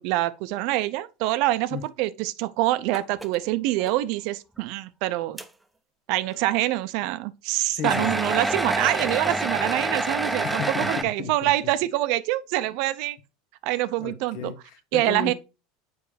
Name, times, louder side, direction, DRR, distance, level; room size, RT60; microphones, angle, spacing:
voice 1, 0.0-5.4 6.1-13.2 13.6-14.5 14.9-15.3, right 16 dB, 65° right, 0.5 m, -25 dB
sound 1, 2.9-3.4 3.8-3.9 4.6-4.7 5.4-5.5 7.8-11.0, right 2 dB, 5° right, 0.6 m, -27 dB
voice 2, 7.7-8.1 10.4-10.9 11.2-11.5 14.0-15.3, left 7 dB, 60° left, 1.1 m, -34 dB
6.9 x 5.2 x 3.2 m
supercardioid pair, 110°, 0 cm